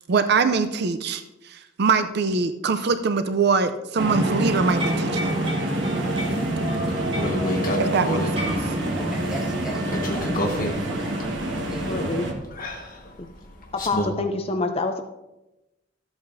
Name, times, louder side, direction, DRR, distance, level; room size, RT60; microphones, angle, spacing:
voice 1, 0.1-1.2 1.5-5.3 7.8-8.5, right 4 dB, 60° right, 9 dB, 0.5 m, -23 dB
sound 1, 4.0-12.3, right 1 dB, 75° right, 1.4 m, -26 dB
sound 2, 4.6-9.8, equal, 30° right, 3.5 m, -36 dB
sound 3, 7.1-8.4 9.9-14.1, left 1 dB, 50° left, 1.5 m, -29 dB
voice 2, 8.9-11.2 11.7-12.0, right 1 dB, 5° right, -4 dB, 1.8 m, -38 dB
voice 3, 11.8-12.3 13.7-15.0, left 3 dB, 30° left, 6 dB, 0.5 m, -26 dB
13.5 x 8.0 x 2.6 m, 0.96 s
head